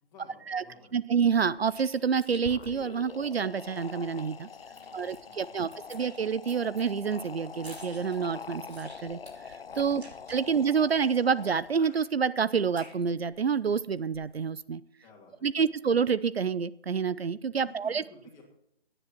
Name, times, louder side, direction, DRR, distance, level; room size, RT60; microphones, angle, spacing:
voice 1, 0.0-1.1 4.7-6.0 9.9-10.1 10.5-10.6 15.0-15.8 17.6-18.4, left 4 dB, 10° left, -2 dB, 2.9 m, -55 dB
voice 2, 0.9-4.5 4.9-9.2 9.5-10.0 10.3-14.8 15.4-18.0, right 6 dB, 70° right, 17 dB, 0.6 m, -28 dB
sound 1, 1.4-3.9 4.2-4.3 4.6-5.5 5.7-11.1 11.6-13.6 13.9-14.5, right 1 dB, 90° right, 5.1 m, -52 dB
sound 2, 2.3-12.0, left 6 dB, 65° left, 0.7 m, -44 dB
16.0 x 10.0 x 4.4 m, 0.70 s
figure-of-eight pair, 150°, 31 cm